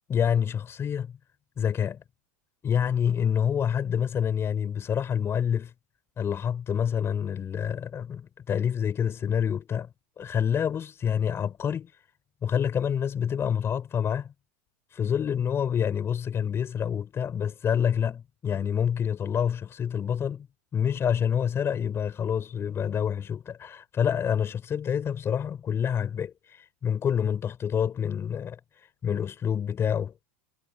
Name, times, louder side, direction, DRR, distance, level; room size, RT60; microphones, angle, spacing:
voice 1, 0.1-1.1 1.6-2.0 2.6-5.7 6.2-9.9 10.2-11.9 12.4-14.3 14.9-20.5 20.7-26.3 26.8-28.6 29.0-30.1, left 8 dB, 30° left, 4.7 m, -27 dB
hypercardioid pair, 95°, 8 cm